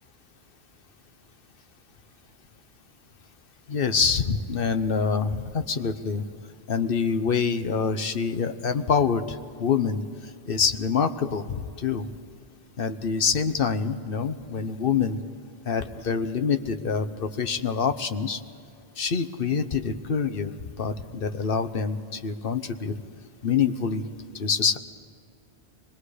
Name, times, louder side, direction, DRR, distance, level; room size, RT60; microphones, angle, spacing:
voice 1, 3.7-6.3 6.7-10.0 10.5-12.1 12.8-15.2 15.6-18.4 19.0-22.9 23.4-24.0 24.3-24.8, left 6 dB, 60° left, 10 dB, 1.0 m, -26 dB
25.0 x 21.5 x 5.0 m, 2.4 s
omnidirectional pair, 1.1 m